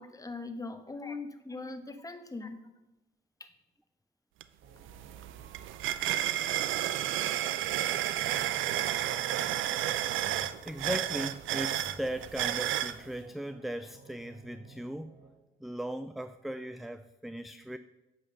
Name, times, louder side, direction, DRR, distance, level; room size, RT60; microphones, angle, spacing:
voice 1, 0.0-2.7 3.4-3.5, left 3 dB, 15° left, 8 dB, 1.1 m, -41 dB
sound 1, 4.4-4.5 4.8-13.0, right 12 dB, 85° right, 0.5 m, -31 dB
sound 2, 4.6-15.3, right 5 dB, 60° right, 1.8 m, -56 dB
voice 2, 10.1-15.2 15.6-17.8, right 1 dB, ahead, 12 dB, 0.3 m, -38 dB
8.3 x 5.8 x 6.4 m, 1.0 s
cardioid pair, 90°, 20 cm